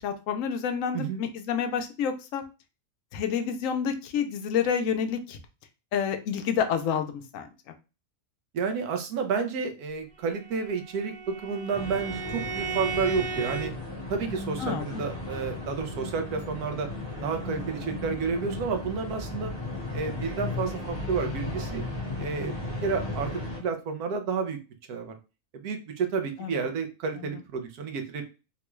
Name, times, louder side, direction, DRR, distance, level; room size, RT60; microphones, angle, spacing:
voice 1, 0.0-2.4 3.1-5.4 5.9-7.5 14.6-15.0 26.4-26.5, left 7 dB, 70° left, 7 dB, 0.9 m, -28 dB
voice 2, 8.5-13.7 14.1-16.9 17.2-19.5 19.9-21.9 22.2-22.5 22.8-23.3 23.6-24.6 24.9-25.1 25.5-28.2, right 5 dB, 85° right, 6 dB, 1.2 m, -30 dB
Bowed string instrument, 10.2-13.7, right 6 dB, 55° right, 1.1 m, -35 dB
sound 1, 11.7-23.6, left 2 dB, 20° left, 0.8 m, -35 dB
3.7 x 2.2 x 3.0 m, 0.30 s
omnidirectional pair, 1.6 m